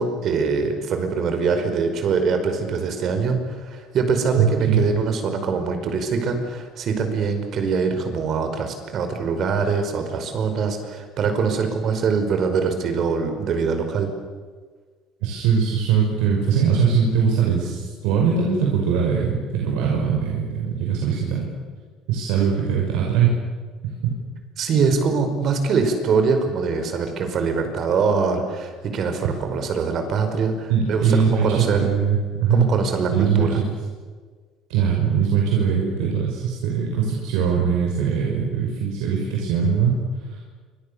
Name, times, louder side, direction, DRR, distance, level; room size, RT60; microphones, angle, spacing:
voice 1, 0.0-14.1 24.6-31.9 32.5-33.6, right 5 dB, 45° right, 7 dB, 5.1 m, -23 dB
voice 2, 4.4-4.8 15.2-21.4 22.1-23.3 23.8-24.1 29.2-29.3 30.7-32.7 33.1-33.5 34.7-40.0 40.3-40.4, right 7 dB, 90° right, -1 dB, 5.8 m, -21 dB
28.0 x 26.0 x 7.0 m, 1.5 s
cardioid pair, 140°, 0 cm